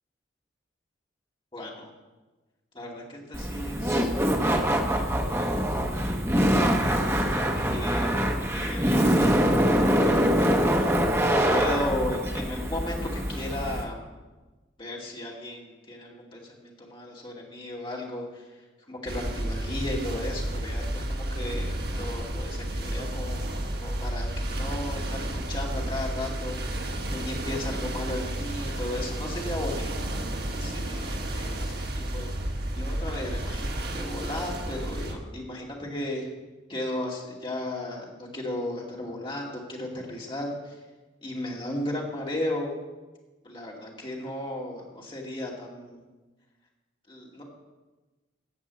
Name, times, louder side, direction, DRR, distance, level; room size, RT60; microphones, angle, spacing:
voice 1, 1.5-1.9 2.7-5.0 5.4-6.1 6.8-10.9 11.5-14.0 14.8-18.4 18.9-30.3 30.5-32.3 32.7-36.3 36.7-40.8 41.2-42.7 43.4-46.0 47.1-47.4, left 1 dB, 25° left, -2 dB, 2.4 m, -35 dB
Laughter, 3.3-13.8, equal, 15° right, 1.0 m, -24 dB
sound 1, 19.1-35.2, right 1 dB, 55° right, 1.5 m, -31 dB
15.0 x 5.4 x 8.4 m, 1.2 s
head